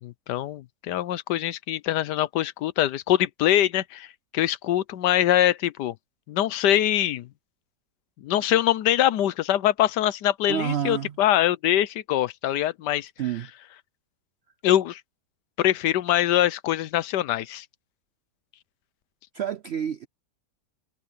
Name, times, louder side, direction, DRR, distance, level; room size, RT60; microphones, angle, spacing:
voice 1, 0.0-4.1 4.3-5.9 6.3-7.3 8.2-13.1 14.6-15.0 15.6-17.6, left 12 dB, 90° left, 1.3 m, -23 dB
voice 2, 10.5-11.2 13.2-13.5 19.3-20.1, right 9 dB, 75° right, 0.6 m, -28 dB
omnidirectional pair, 1.8 m